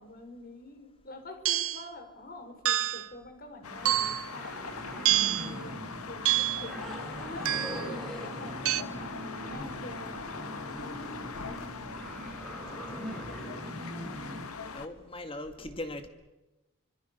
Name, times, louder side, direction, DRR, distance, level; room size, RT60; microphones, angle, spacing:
voice 1, 0.0-6.9 7.2-10.5, left 2 dB, 40° left, 6 dB, 4.9 m, -46 dB
sound 1, 1.5-1.9 2.7-3.1 3.9-4.3 5.1-5.5 6.3-6.7 7.5-7.9 8.7-8.8, right 13 dB, 70° right, 1.0 m, -27 dB
sound 2, 3.6-14.9, left 4 dB, 90° left, 2.0 m, -42 dB
sound 3, 3.8-14.4, equal, ahead, 5.7 m, -41 dB
voice 2, 12.7-13.3 14.7-16.1, left 1 dB, 25° left, 7 dB, 2.2 m, -40 dB
26.0 x 26.0 x 6.9 m, 1.0 s
head